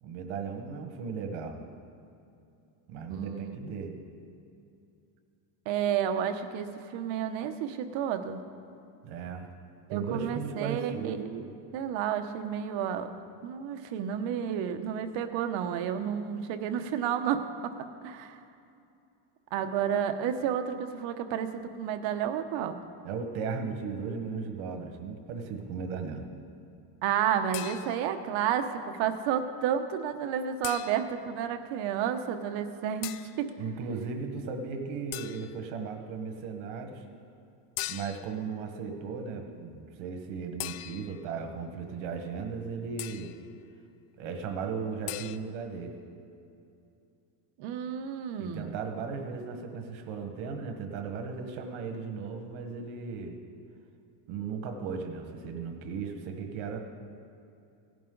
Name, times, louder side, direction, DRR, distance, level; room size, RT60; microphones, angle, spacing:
voice 1, 0.0-1.6 2.9-4.0 9.0-9.5 9.9-11.2 23.0-26.2 33.6-37.0 37.9-43.3 44.1-46.0 48.4-53.4 54.3-56.8, right 5 dB, 85° right, 4 dB, 1.6 m, -36 dB
voice 2, 3.1-3.7 5.7-8.4 9.9-13.1 13.4-17.7 18.0-18.4 19.5-22.8 27.0-33.5 47.6-48.7, right 8 dB, 70° right, 8 dB, 1.0 m, -31 dB
sound 1, 27.5-28.2 30.6-31.3 33.0-33.4 35.1-35.7 37.8-38.4 40.6-41.3 43.0-43.5 45.1-45.4, left 16 dB, 85° left, 0.6 m, -40 dB
17.0 x 10.5 x 3.9 m, 2.6 s
cardioid pair, 155°, 47 cm